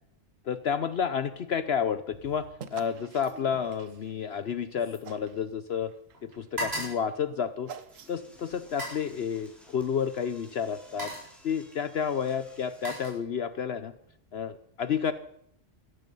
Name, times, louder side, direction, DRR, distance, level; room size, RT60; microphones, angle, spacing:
voice 1, 0.4-5.9 6.3-7.7 8.1-11.1 11.4-13.9 14.3-15.1, left 7 dB, 60° left, 13 dB, 0.9 m, -30 dB
sound 1, 2.1-2.4 2.7-5.9 6.1-8.0 8.6-9.1 10.1-10.3 10.7-11.4 12.3-13.7 14.0-14.4, right 1 dB, 50° right, 7.7 m, -40 dB
sound 2, 2.6-4.6 5.0-5.5 5.8-8.4, right 7 dB, 90° right, 1.4 m, -48 dB
Door / Toilet flush, 7.9-13.1, equal, ahead, 4.0 m, -56 dB
16.0 x 13.5 x 5.5 m, 0.71 s
omnidirectional pair, 1.3 m